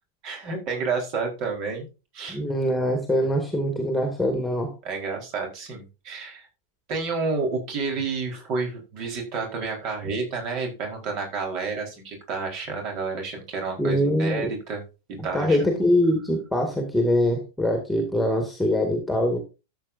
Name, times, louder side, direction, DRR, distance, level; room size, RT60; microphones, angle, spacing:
voice 1, 0.2-1.9 2.1-2.4 4.8-6.5 6.9-14.8 15.2-15.6, right 4 dB, 40° right, 2 dB, 4.5 m, -30 dB
voice 2, 2.3-4.7 13.8-14.5 15.2-19.4, left 1 dB, 5° left, 4 dB, 2.3 m, -23 dB
13.5 x 8.1 x 2.7 m, 0.29 s
figure-of-eight pair, 90°, 0 cm